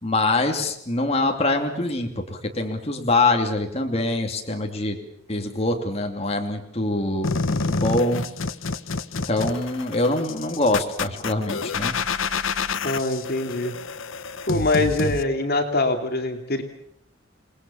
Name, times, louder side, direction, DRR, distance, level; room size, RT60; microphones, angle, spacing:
voice 1, 0.0-5.0 5.3-8.2 9.3-11.9, left 2 dB, 30° left, 3 dB, 2.7 m, -24 dB
sound 1, 7.2-15.2, left 4 dB, 75° left, 1.1 m, -28 dB
voice 2, 12.8-13.7 14.5-16.6, left 2 dB, 50° left, 5 dB, 2.7 m, -23 dB
28.5 x 20.0 x 7.1 m, 0.75 s
head